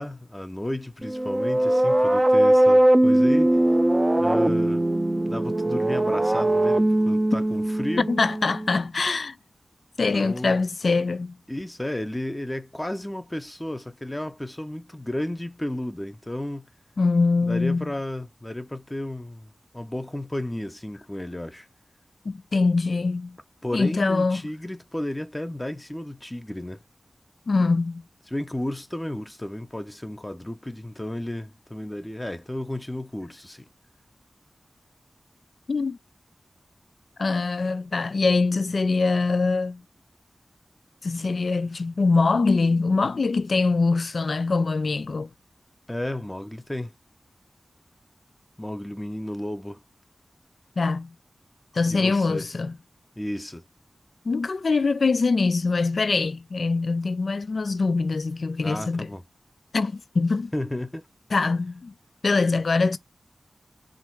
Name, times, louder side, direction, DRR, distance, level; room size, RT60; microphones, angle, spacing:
voice 1, 0.0-3.6 4.2-4.9 5.3-8.1 10.1-10.6 11.5-16.7 17.5-21.7 23.6-26.8 28.3-33.7 45.9-46.9 48.6-49.8 51.9-52.5 53.2-53.6 58.6-59.2 60.5-61.1, left 1 dB, 20° left, 0.6 m, -33 dB
sound 1, 1.0-8.8, right 1 dB, 25° right, 0.5 m, -20 dB
voice 2, 8.1-9.4 10.0-11.4 17.0-17.9 22.3-23.4 23.7-24.4 27.5-28.0 35.7-36.0 37.2-39.8 41.0-45.3 50.8-51.1 51.7-52.8 54.2-59.1 59.7-60.5 61.3-61.9 62.2-63.0, left 3 dB, 70° left, 0.4 m, -23 dB
3.5 x 2.6 x 4.5 m
wide cardioid pair, 60°, 0 cm